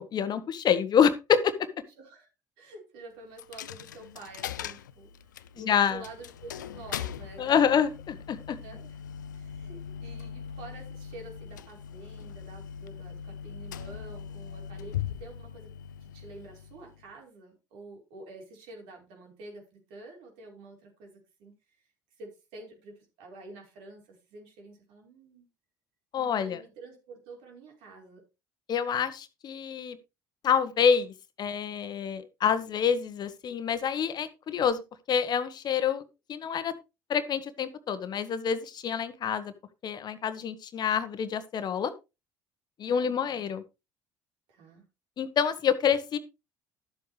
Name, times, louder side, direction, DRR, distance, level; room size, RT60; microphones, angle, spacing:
voice 1, 0.0-1.7 5.6-6.0 7.4-8.6 26.1-26.6 28.7-30.0 30.4-34.8 35.1-36.0 36.3-36.7 37.1-39.5 39.8-41.9 42.8-43.6 45.2-46.2, left 7 dB, 45° left, 13 dB, 1.3 m, -27 dB
voice 2, 2.0-2.3 2.6-5.1 5.6-7.7 8.6-9.0 9.3-15.7 16.0-21.5 22.2-25.5 26.2-28.2 42.9-43.5 44.5-44.8, right 2 dB, 65° right, 0 dB, 5.1 m, -48 dB
Coin (dropping), 3.4-17.1, left 8 dB, 85° left, 0.5 m, -40 dB
13.0 x 7.9 x 3.4 m, 0.27 s
hypercardioid pair, 60°, 10 cm